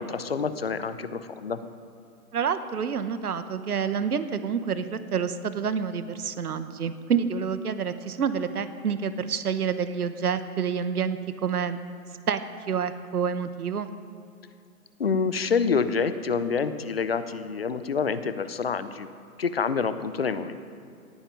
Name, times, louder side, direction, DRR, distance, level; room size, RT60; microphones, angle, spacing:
voice 1, 0.0-1.6 15.0-19.1 19.4-20.6, left 5 dB, 40° left, 12 dB, 0.6 m, -27 dB
voice 2, 2.3-11.8 12.3-12.4 12.7-13.9, right 7 dB, 80° right, 11 dB, 1.1 m, -28 dB
18.0 x 9.1 x 5.3 m, 2.4 s
hypercardioid pair, 170°, 45 cm